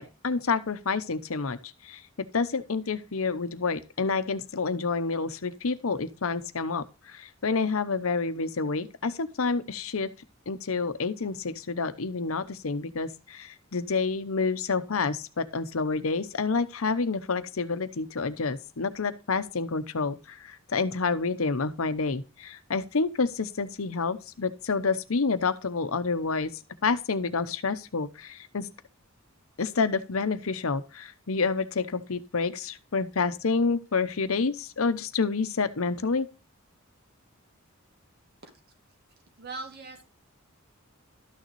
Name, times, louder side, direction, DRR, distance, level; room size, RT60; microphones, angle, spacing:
voice 1, 0.0-1.6 1.8-10.1 10.5-26.5 26.8-28.7 29.6-36.3, left 4 dB, 80° left, 0.8 m, -28 dB
voice 2, 39.4-40.0, right 3 dB, 50° right, 2.3 m, -39 dB
12.5 x 6.6 x 3.1 m
head